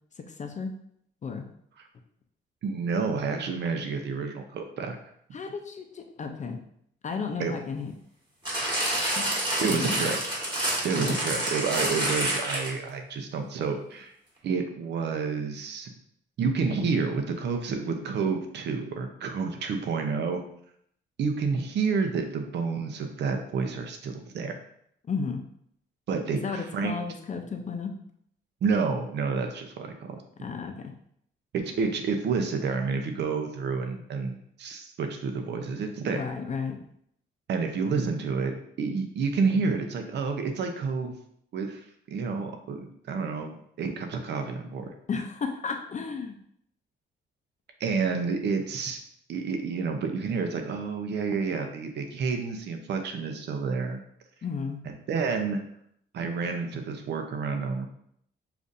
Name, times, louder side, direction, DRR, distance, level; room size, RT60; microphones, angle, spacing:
voice 1, 0.3-0.7 1.2-1.4 5.3-6.6 7.0-7.9 9.2-9.3 9.6-10.2 10.9-11.2 25.0-25.4 26.4-27.9 30.4-30.9 36.1-36.8 45.1-46.4 54.4-54.8, left 5 dB, 35° left, 5 dB, 0.5 m, -33 dB
voice 2, 2.6-5.0 7.4-7.5 9.6-10.2 10.8-14.1 14.4-15.9 16.4-20.4 21.2-24.5 26.1-26.9 28.6-30.2 31.5-36.2 37.5-41.2 41.5-44.9 47.8-49.0 49.3-54.0 54.9-55.6 56.1-57.9, right 5 dB, 60° right, 5 dB, 0.6 m, -29 dB
sound 1, 8.5-12.9 13.6-13.7, right 1 dB, 25° right, 1.8 m, -28 dB
6.8 x 2.5 x 2.6 m, 0.70 s
cardioid pair, 90°, 20 cm